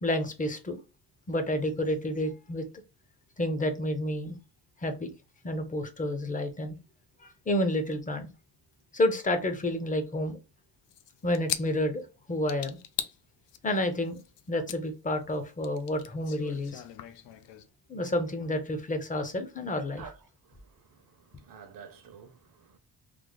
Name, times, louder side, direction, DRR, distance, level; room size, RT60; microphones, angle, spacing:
voice 1, 0.0-0.8 1.3-2.7 3.4-4.4 4.8-5.1 5.4-6.8 7.2-8.3 8.9-10.4 11.2-12.8 13.6-14.2 14.5-16.8 17.9-20.0, left 1 dB, 20° left, 0.5 m, -30 dB
sound 1, 10.9-12.1 12.5-13.2 13.5-14.8 15.1-17.7, left 11 dB, 85° left, 0.5 m, -38 dB
voice 2, 19.9-22.8, right 6 dB, 55° right, 0.7 m, -51 dB
3.2 x 2.0 x 3.6 m
wide cardioid pair, 145°, 42 cm